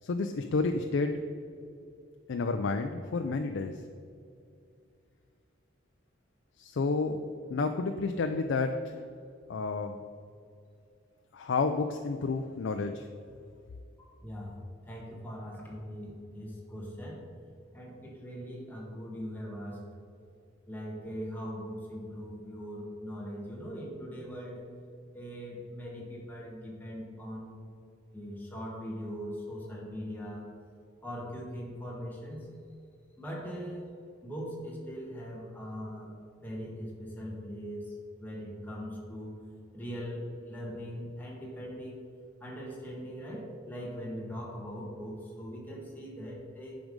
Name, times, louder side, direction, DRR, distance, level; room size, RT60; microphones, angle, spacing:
voice 1, 0.0-1.2 2.3-3.8 6.6-7.2 7.5-9.0 9.5-10.0 11.3-13.1, left 3 dB, 70° left, 6 dB, 0.4 m, -30 dB
voice 2, 14.0-17.3 17.7-19.9 20.7-24.7 25.1-27.5 28.1-30.5 31.0-32.6 33.2-33.9 34.2-36.2 36.4-37.9 38.2-39.4 39.7-42.0 42.4-46.8, equal, 10° left, -2 dB, 1.4 m, -40 dB
9.3 x 5.1 x 5.2 m, 2.4 s
head